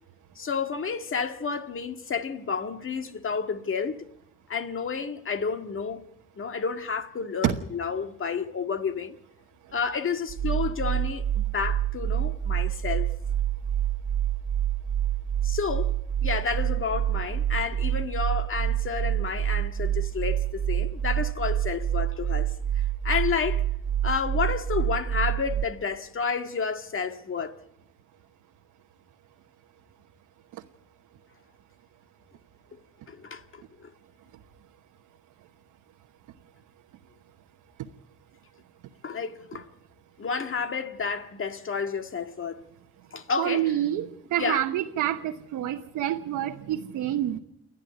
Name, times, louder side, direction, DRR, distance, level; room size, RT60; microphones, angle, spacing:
voice 1, 0.4-4.1 4.5-6.0 6.4-9.2 9.7-13.1 15.4-15.9 16.2-23.6 24.0-27.6 33.1-33.9 39.0-39.7 40.2-42.7 43.1-43.7 44.4-44.6, left 5 dB, 45° left, 1.9 m, -30 dB
sound 1, 10.3-25.7, right 11 dB, 65° right, 1.0 m, -27 dB
voice 2, 43.4-47.4, right 12 dB, 90° right, 1.2 m, -27 dB
29.0 x 11.0 x 9.3 m
cardioid pair, 90°, 30 cm